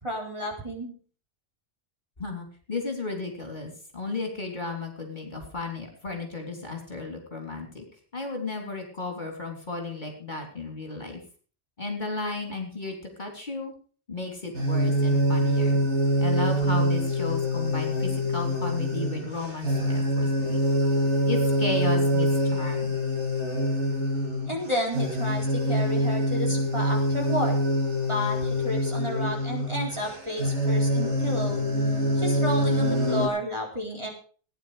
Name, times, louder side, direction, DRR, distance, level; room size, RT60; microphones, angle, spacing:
voice 1, 0.0-0.9 24.5-27.6 28.1-31.6 32.2-34.1, equal, 25° right, 0 dB, 4.0 m, -31 dB
voice 2, 2.2-7.8 8.1-11.2 11.8-13.7 14.1-15.8 16.2-20.6 21.3-22.9, left 3 dB, 40° left, 2 dB, 3.5 m, -34 dB
sound 1, 14.5-33.3, equal, 80° right, 3.5 m, -25 dB
17.5 x 10.0 x 5.0 m, 0.40 s
omnidirectional pair, 1.2 m